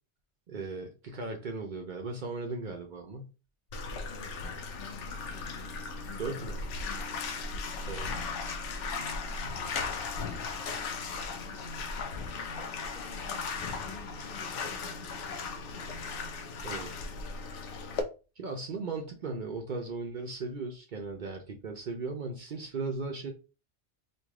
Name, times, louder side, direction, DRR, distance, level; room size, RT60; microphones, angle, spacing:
voice 1, 0.5-3.3 6.2-6.6 7.9-8.1 16.6-16.9 18.4-23.3, right 3 dB, 55° right, 0.6 m, -37 dB
Bathtub (filling or washing), 3.7-18.0, left 4 dB, 85° left, 0.9 m, -37 dB
voice 2, 3.9-6.2 6.8-7.9 9.5-9.8 10.1-11.7 12.1-13.5 13.8-16.0, left 5 dB, 55° left, 0.8 m, -52 dB
3.1 x 2.6 x 3.6 m
omnidirectional pair, 1.2 m